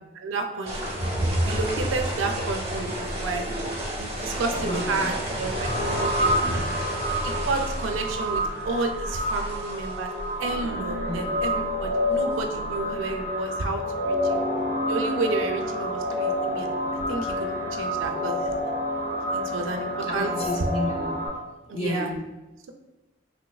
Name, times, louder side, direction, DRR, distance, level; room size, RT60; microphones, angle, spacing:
voice 1, 0.1-0.9 1.4-3.5 4.0-6.6 7.2-10.1 10.4-14.4 14.9-16.7 17.1-18.5 19.3-20.3 21.7-22.1, right 3 dB, 80° right, 5 dB, 0.4 m, -31 dB
sound 1, 0.7-13.2, right 1 dB, 30° right, 0.6 m, -31 dB
voice 2, 4.3-5.1 6.4-7.5 11.0-11.3 20.0-21.1 21.7-22.2, left 1 dB, 30° left, 1 dB, 0.4 m, -33 dB
sound 2, 5.5-21.3, equal, 55° left, 0.8 m, -28 dB
3.1 x 3.1 x 2.3 m, 1.1 s
head